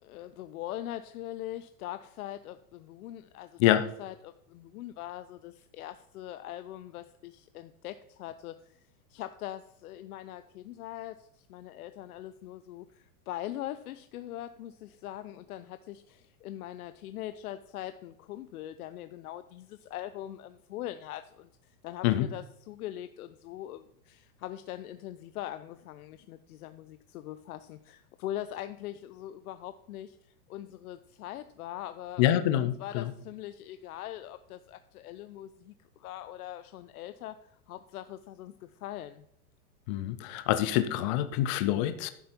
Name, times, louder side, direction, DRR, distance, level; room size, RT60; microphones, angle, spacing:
voice 1, 0.0-8.8 9.1-32.3 32.6-39.2, left 13 dB, 65° left, 11 dB, 0.8 m, -42 dB
voice 2, 32.2-33.1 39.9-42.1, left 13 dB, 25° left, 11 dB, 0.3 m, -26 dB
11.0 x 9.7 x 4.4 m, 0.73 s
hypercardioid pair, 130°, 47 cm